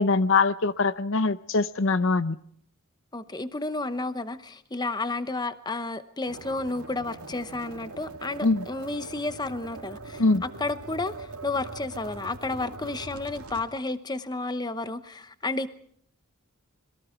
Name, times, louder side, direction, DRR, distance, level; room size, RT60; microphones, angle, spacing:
voice 1, 0.0-2.4 8.4-8.6 10.2-10.4, left 3 dB, 60° left, 0.7 m, -23 dB
voice 2, 3.1-15.7, left 2 dB, 20° left, 0.9 m, -32 dB
sound 1, 6.3-13.6, right 3 dB, 90° right, 2.6 m, -42 dB
26.5 x 22.5 x 4.5 m
head